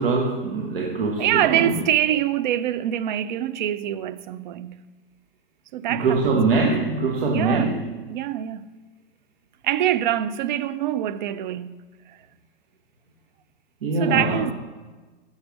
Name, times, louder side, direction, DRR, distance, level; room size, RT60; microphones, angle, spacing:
voice 1, 0.0-1.7 5.9-7.8 13.8-14.4, right 3 dB, 75° right, 1.1 m, -23 dB
voice 2, 1.2-4.8 5.7-6.5 7.3-7.8 8.1-8.7 9.6-12.2 13.9-14.5, right 11 dB, 55° right, 0.4 m, -25 dB
6.5 x 5.4 x 4.6 m
hypercardioid pair, 140°, 29 cm